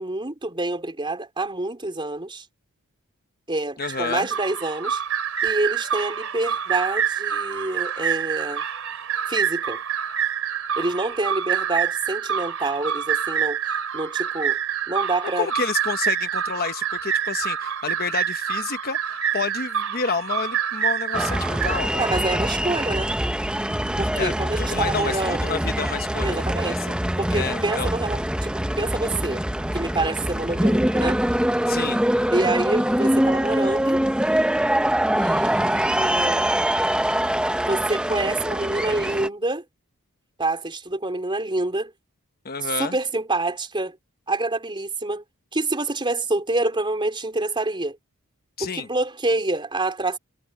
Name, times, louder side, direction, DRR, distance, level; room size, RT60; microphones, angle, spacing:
voice 1, 0.0-2.5 3.5-5.0 5.4-8.6 9.3-9.8 10.8-13.6 13.9-14.6 14.9-15.5 22.0-23.1 24.0-25.6 26.2-26.8 27.2-29.4 29.7-31.2 32.3-34.0 35.2-36.5 37.7-39.6 40.4-41.9 42.6-44.0 44.3-45.2 45.5-48.0 48.6-50.2, right 2 dB, 20° right, 3.8 m, -27 dB
voice 2, 3.8-4.3 15.4-22.0 24.1-27.0 27.3-27.9 31.7-32.0 42.4-42.9 48.6-48.9, left 5 dB, 45° left, 1.1 m, -29 dB
sound 1, 3.8-21.8, right 8 dB, 70° right, 3.3 m, -27 dB
sound 2, 21.1-39.3, right 1 dB, 5° right, 0.8 m, -24 dB
head